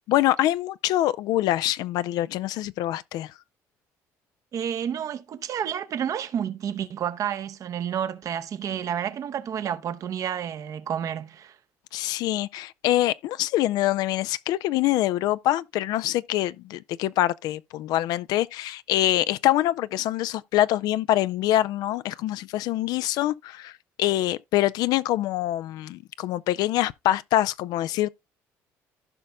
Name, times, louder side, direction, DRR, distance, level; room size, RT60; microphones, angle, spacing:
voice 1, 0.1-3.3 11.9-28.1, left 14 dB, 75° left, 0.4 m, -25 dB
voice 2, 4.5-11.6, right 9 dB, 55° right, 0.7 m, -30 dB
15.0 x 5.2 x 2.2 m
supercardioid pair, 80°, 7 cm